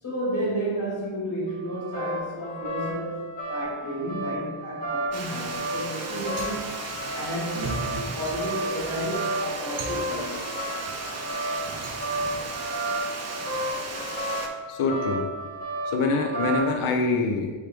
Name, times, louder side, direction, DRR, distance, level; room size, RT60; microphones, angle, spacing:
voice 1, 0.0-6.7 7.1-10.4, right 1 dB, 40° left, -7 dB, 1.4 m, -32 dB
sound 1, 1.5-16.8, right 1 dB, 20° left, 0.8 m, -32 dB
Water, 5.1-14.5, right 3 dB, 35° right, 0.4 m, -36 dB
sound 2, 6.1-11.1 11.5-12.6, right 2 dB, 55° right, 0.8 m, -40 dB
voice 2, 14.7-15.2 15.9-17.5, left 3 dB, 80° left, 3 dB, 0.6 m, -25 dB
4.4 x 3.1 x 3.4 m, 1.3 s
wide cardioid pair, 165°, 50 cm